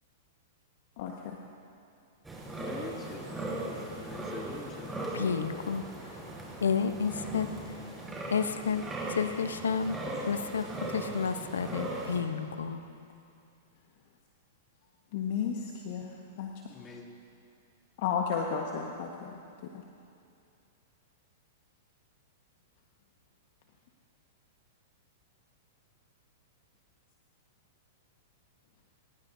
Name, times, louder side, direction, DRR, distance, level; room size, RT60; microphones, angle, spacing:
voice 1, 1.0-1.4 15.1-16.5 18.0-19.8, left 7 dB, 55° left, 1 dB, 1.4 m, -33 dB
sound 1, 2.2-12.2, right 1 dB, 10° right, 4.9 m, -39 dB
voice 2, 2.5-5.5 16.7-17.1, left 3 dB, 25° left, 0 dB, 2.5 m, -45 dB
voice 3, 5.1-5.8 6.6-7.5 8.3-8.8 9.2-10.0 10.3-10.7 10.9-12.8, left 6 dB, 85° left, 10 dB, 0.8 m, -30 dB
29.5 x 16.0 x 2.7 m, 2.5 s
hypercardioid pair, 110°, 0 cm